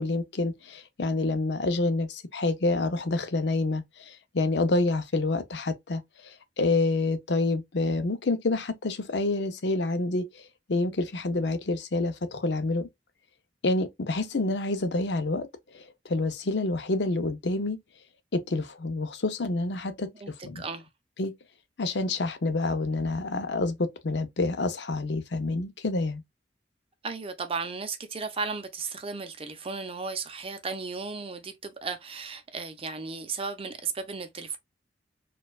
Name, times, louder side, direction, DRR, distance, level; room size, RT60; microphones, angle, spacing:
voice 1, 0.0-10.4 10.7-12.9 13.6-15.5 15.7-17.8 18.3-20.6 21.2-21.3 21.8-26.2, left 2 dB, 70° left, 0.6 m, -28 dB
voice 2, 20.2-20.9 27.0-34.6, right 4 dB, 30° right, 0.6 m, -35 dB
4.3 x 2.4 x 2.3 m
head